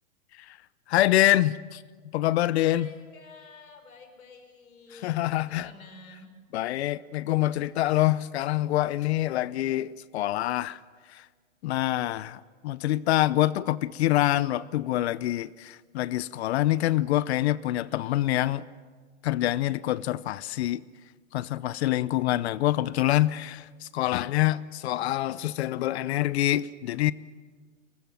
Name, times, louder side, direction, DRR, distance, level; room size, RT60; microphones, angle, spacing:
voice 1, 0.9-1.8 2.1-2.9 5.0-5.7 6.5-10.8 11.1-11.2 11.6-18.6 19.2-20.8 21.3-27.1, left 14 dB, 50° left, 0.8 m, -26 dB
voice 2, 2.5-6.3 17.9-18.1 21.6-21.9, left 3 dB, 90° left, 5.4 m, -51 dB
23.5 x 20.5 x 9.0 m
hypercardioid pair, 130°, 41 cm